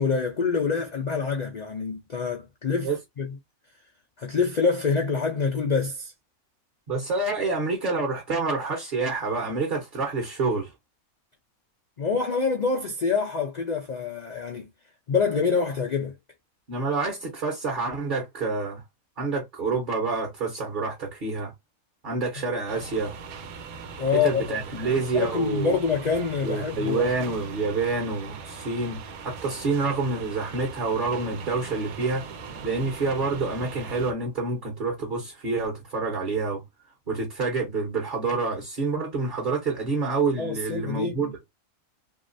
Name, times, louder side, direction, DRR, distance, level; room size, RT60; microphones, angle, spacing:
voice 1, 0.0-2.9 3.2-3.3 4.2-6.1 12.0-14.7 15.1-16.1 24.0-24.6 25.1-27.1 40.4-41.3, left 5 dB, 75° left, 0.4 m, -26 dB
voice 2, 6.9-10.7 16.7-18.8 19.2-21.5 22.0-23.1 24.1-25.8 26.4-29.0 29.2-32.2 32.6-36.6 37.1-41.3, right 3 dB, 40° right, 0.9 m, -27 dB
sound 1, 22.7-34.1, right 5 dB, 75° right, 1.1 m, -40 dB
3.0 x 2.8 x 2.6 m
omnidirectional pair, 1.5 m